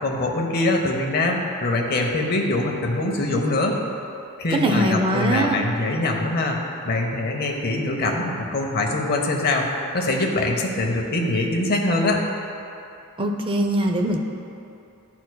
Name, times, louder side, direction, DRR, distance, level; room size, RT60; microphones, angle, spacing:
voice 1, 0.0-3.7 4.4-6.6 6.8-12.2, left 2 dB, 45° left, 1 dB, 0.7 m, -23 dB
voice 2, 4.5-5.6 13.2-14.2, right 1 dB, 25° right, 3 dB, 0.4 m, -21 dB
11.5 x 4.3 x 2.2 m, 2.8 s
head